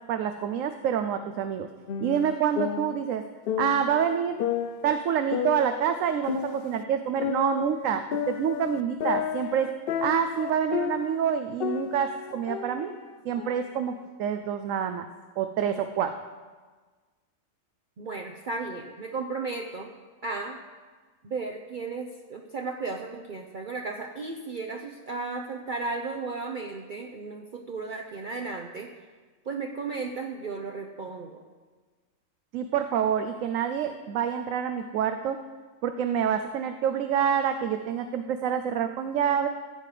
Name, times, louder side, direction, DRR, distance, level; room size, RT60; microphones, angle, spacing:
voice 1, 0.1-1.7 2.0-3.3 3.6-4.4 4.8-9.7 10.0-12.9 13.2-15.1 15.4-16.1 32.5-35.4 35.8-39.5, right 8 dB, 80° right, 8 dB, 1.0 m, -27 dB
sound 1, 1.9-4.0 4.4-6.8 7.2-11.3 11.6-13.6, left 8 dB, 65° left, 0.6 m, -32 dB
voice 2, 18.0-19.9 20.2-20.6 21.2-28.9 29.5-31.4, right 3 dB, 45° right, 2 dB, 0.7 m, -34 dB
15.5 x 7.7 x 4.9 m, 1.4 s
omnidirectional pair, 1.4 m